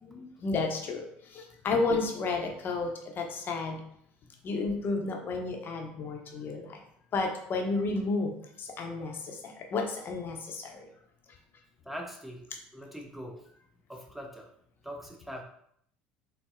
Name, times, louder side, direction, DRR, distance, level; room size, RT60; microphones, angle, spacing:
voice 1, 0.0-3.8 4.4-6.8 7.1-8.3 8.6-10.9, left 3 dB, 45° left, 2 dB, 0.6 m, -32 dB
voice 2, 11.9-12.4 12.7-13.5 13.9-14.5 14.8-15.4, equal, 5° right, 1 dB, 0.5 m, -42 dB
3.9 x 2.0 x 2.4 m, 0.68 s
hypercardioid pair, 70°, 5 cm